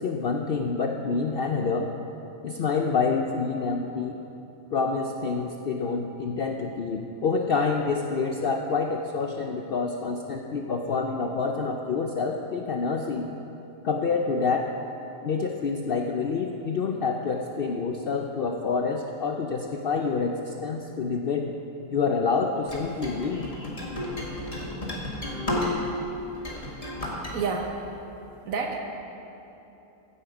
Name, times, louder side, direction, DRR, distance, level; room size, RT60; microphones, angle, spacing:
voice 1, 0.0-1.9 2.4-4.2 4.7-13.3 13.8-14.7 15.2-21.5 21.9-23.9, left 4 dB, 55° left, 2 dB, 0.7 m, -27 dB
sound 1, 22.7-26.0 26.3-27.3, left 1 dB, 25° left, 1.8 m, -32 dB
voice 2, 27.3-27.8 28.4-28.8, right 5 dB, 80° right, 3 dB, 1.5 m, -28 dB
15.0 x 8.5 x 5.1 m, 2.9 s
omnidirectional pair, 1.4 m